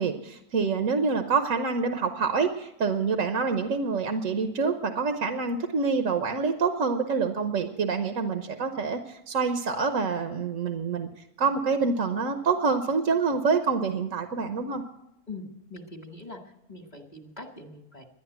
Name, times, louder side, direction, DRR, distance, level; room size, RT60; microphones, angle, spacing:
voice 1, 0.0-11.1 11.4-14.8, right 5 dB, 60° right, 6 dB, 1.2 m, -26 dB
voice 2, 15.3-16.4 16.7-18.1, left 2 dB, 30° left, 4 dB, 1.5 m, -42 dB
12.0 x 10.5 x 8.0 m, 0.83 s
omnidirectional pair, 1.7 m